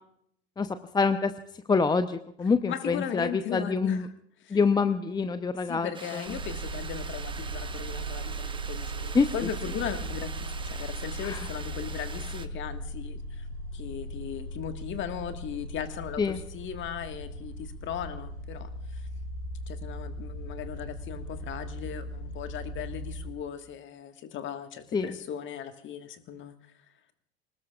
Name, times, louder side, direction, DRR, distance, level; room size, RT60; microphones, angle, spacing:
voice 1, 0.9-1.3 1.7-4.0 4.5-6.2 9.1-9.3 11.2-11.4 16.2-16.4 24.9-25.1, left 4 dB, 15° left, 10 dB, 0.7 m, -26 dB
voice 2, 2.7-4.1 4.4-4.6 5.6-13.5 13.7-19.1 19.7-26.6, left 9 dB, 40° left, 8 dB, 1.6 m, -38 dB
sound 1, 5.9-12.5, right 5 dB, 15° right, 1.0 m, -43 dB
sound 2, 6.3-23.3, right 1 dB, 70° left, 6.5 m, -38 dB
26.5 x 19.5 x 2.4 m, 0.69 s
figure-of-eight pair, 80°, 32 cm